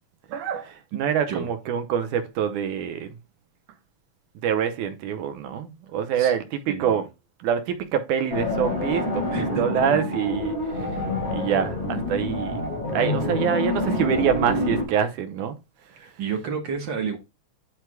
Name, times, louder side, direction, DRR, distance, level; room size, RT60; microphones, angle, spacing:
voice 1, 0.3-3.1 4.4-7.1 7.4-9.3 9.6-11.0 11.3-12.6 12.9-15.6, right 8 dB, 85° right, 2.4 m, -25 dB
voice 2, 6.7-7.0 9.3-9.6 16.0-17.2, right 6 dB, 50° right, 1.5 m, -30 dB
sound 1, 8.3-14.8, left 2 dB, 20° left, 2.7 m, -27 dB
11.5 x 4.6 x 2.2 m
omnidirectional pair, 3.4 m